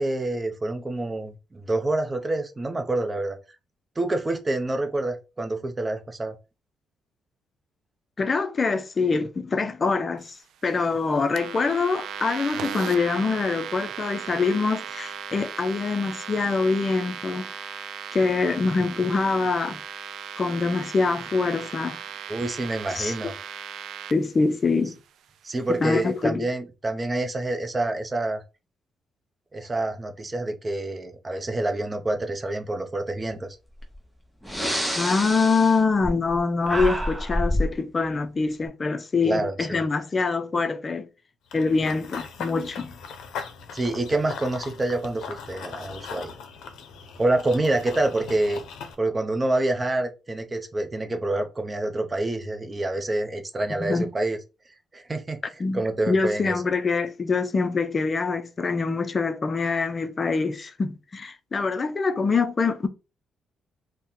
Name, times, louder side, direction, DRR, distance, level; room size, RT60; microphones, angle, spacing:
voice 1, 0.0-3.4 4.0-6.3 22.3-23.3 25.4-28.4 29.5-33.6 39.2-39.8 43.7-46.3 47.2-48.6 49.0-54.4 54.9-55.4 55.7-56.6, right 2 dB, 25° right, 0.6 m, -27 dB
voice 2, 8.2-10.4 10.6-17.5 18.1-19.8 20.4-22.0 22.9-23.1 24.1-24.9 25.8-26.4 35.0-41.1 41.5-42.9 53.8-54.1 55.6-55.8 56.1-62.9, left 4 dB, 35° left, 0.5 m, -24 dB
sound 1, 11.4-24.1, right 9 dB, 75° right, 0.3 m, -37 dB
Breathing, 33.8-33.9 34.4-36.4 36.6-37.7, equal, 5° right, 0.9 m, -27 dB
Run / Bird vocalization bird call bird song, 41.5-48.9, left 6 dB, 80° left, 0.5 m, -39 dB
2.8 x 2.1 x 3.7 m
cardioid pair, 90°, 0 cm